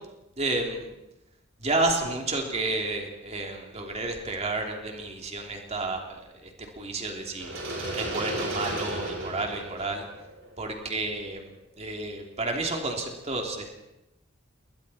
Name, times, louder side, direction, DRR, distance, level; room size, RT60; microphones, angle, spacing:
voice 1, 0.4-0.9 1.6-7.5 7.9-10.0 10.6-11.5 11.8-13.7, right 2 dB, 35° right, 2 dB, 3.1 m, -31 dB
sound 1, 7.4-11.3, right 1 dB, 70° right, 6.8 m, -34 dB
29.5 x 21.5 x 4.3 m, 0.93 s
head